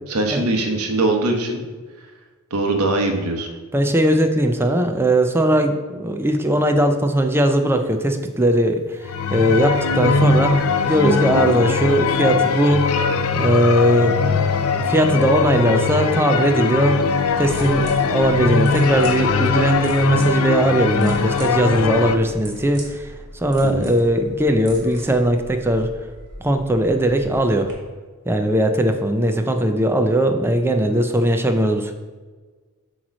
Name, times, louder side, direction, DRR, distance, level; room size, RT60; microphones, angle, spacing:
voice 1, 0.1-1.6 2.5-3.5 11.3-11.6 23.6-23.9, right 2 dB, 80° right, 4 dB, 1.0 m, -22 dB
voice 2, 3.7-10.5 10.9-12.9 13.3-16.9 17.4-23.1 23.3-25.9 26.4-27.7 28.3-31.9, right 1 dB, 10° right, 6 dB, 0.5 m, -19 dB
sound 1, 9.0-22.2, left 5 dB, 70° left, 0.5 m, -20 dB
sound 2, 17.3-27.7, right 1 dB, 55° right, 1.9 m, -40 dB
8.0 x 3.1 x 6.2 m, 1.4 s
head